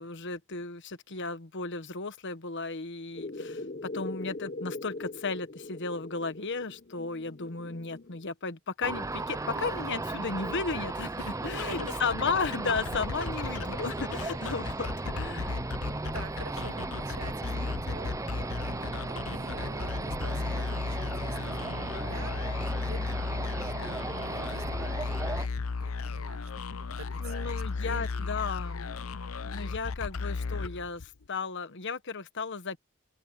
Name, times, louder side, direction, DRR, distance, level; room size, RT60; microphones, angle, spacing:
voice 1, 0.0-3.6 3.9-15.5 27.2-29.0 29.4-32.8, left 4 dB, 60° left, 1.3 m, -34 dB
sound 1, 3.1-8.3, left 2 dB, 40° left, 1.1 m, -41 dB
sound 2, 8.8-25.5, right 2 dB, 15° right, 0.5 m, -36 dB
voice 2, 11.2-12.0 14.2-14.5 15.9-28.4, right 3 dB, 85° right, 1.9 m, -48 dB
sound 3, 11.5-31.2, left 4 dB, 80° left, 0.7 m, -35 dB
open air
head